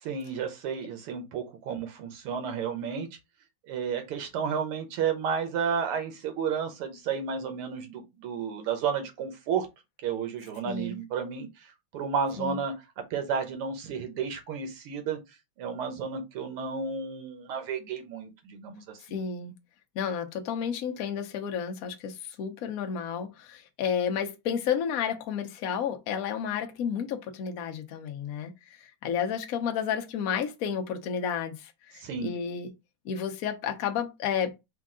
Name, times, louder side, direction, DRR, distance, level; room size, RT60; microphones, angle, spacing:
voice 1, 0.0-3.1 3.7-9.7 10.0-12.7 13.1-15.2 15.6-19.0 32.0-32.3, right 6 dB, 80° right, 1.9 m, -32 dB
voice 2, 10.6-11.0 12.4-12.6 19.1-19.5 19.9-32.7 33.0-34.5, left 7 dB, 70° left, 0.8 m, -31 dB
4.5 x 2.4 x 3.7 m
omnidirectional pair, 2.4 m